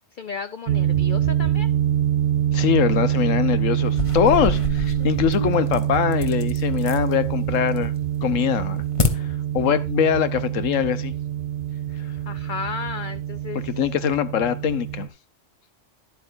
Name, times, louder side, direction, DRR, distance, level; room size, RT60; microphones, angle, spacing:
voice 1, 0.1-1.7 12.3-13.7, left 6 dB, 60° left, 0.5 m, -33 dB
sound 1, 0.7-15.1, right 11 dB, 70° right, 1.0 m, -25 dB
voice 2, 2.5-7.9 8.2-8.8 9.1-11.1 13.7-15.1, left 9 dB, 80° left, 1.2 m, -22 dB
sound 2, 3.9-7.1 7.5-8.1 8.4-9.1, left 3 dB, 30° left, 0.9 m, -28 dB
11.0 x 8.2 x 2.6 m
omnidirectional pair, 1.3 m